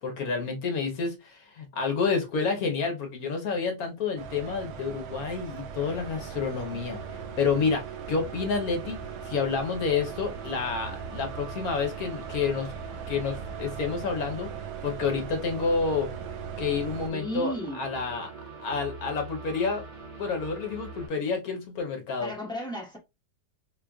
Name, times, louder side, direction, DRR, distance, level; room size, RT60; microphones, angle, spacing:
voice 1, 0.0-7.0 7.4-9.0 9.2-12.7 13.1-16.1 16.6-18.3 18.6-19.8 20.2-22.3, left 5 dB, 60° left, 1.1 m, -29 dB
sound 1, 4.2-17.1, right 8 dB, 85° right, 1.4 m, -40 dB
sound 2, 5.8-21.1, right 4 dB, 65° right, 2.5 m, -43 dB
voice 2, 17.1-17.8 22.2-23.0, equal, 5° left, 0.6 m, -34 dB
4.5 x 2.3 x 2.3 m
omnidirectional pair, 2.0 m